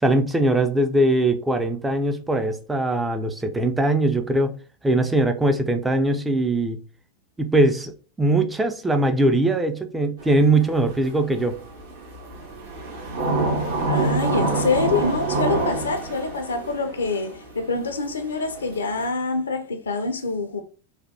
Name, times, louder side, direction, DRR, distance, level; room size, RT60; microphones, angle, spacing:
voice 1, 0.0-4.5 4.8-6.8 7.4-7.9 8.2-11.6, right 2 dB, 10° right, 0.4 m, -21 dB
sound 1, 10.2-19.0, right 3 dB, 60° right, 0.8 m, -27 dB
voice 2, 13.9-20.6, left 4 dB, 70° left, 0.5 m, -26 dB
3.2 x 2.2 x 2.6 m
figure-of-eight pair, 90°, 0 cm